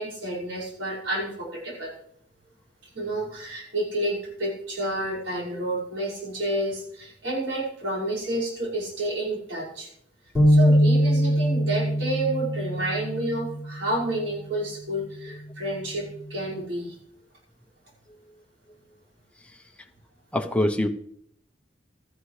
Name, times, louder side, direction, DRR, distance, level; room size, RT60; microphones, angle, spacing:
voice 1, 0.0-1.9 2.9-9.9 10.5-17.0, right 1 dB, 75° right, -6 dB, 5.5 m, -30 dB
sound 1, 10.3-13.9, equal, 10° right, 4.9 m, -22 dB
voice 2, 20.3-20.9, left 1 dB, 5° left, 4 dB, 0.8 m, -24 dB
15.0 x 13.5 x 3.3 m, 0.70 s
head